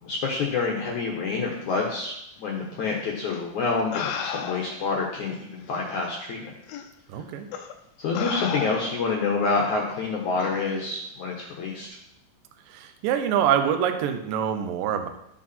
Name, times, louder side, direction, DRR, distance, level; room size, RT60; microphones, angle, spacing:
voice 1, 0.0-6.5 8.0-11.9, left 4 dB, 70° left, -1 dB, 1.8 m, -27 dB
sound 1, 3.3-3.4 3.9-4.9 5.7-5.8 6.7-6.9 7.5-7.7 8.2-9.1 10.4-10.6, left 7 dB, 90° left, 2.1 m, -33 dB
voice 2, 7.1-7.5 12.7-15.1, right 9 dB, 75° right, 7 dB, 2.0 m, -25 dB
12.5 x 8.4 x 4.3 m, 0.79 s
omnidirectional pair, 5.3 m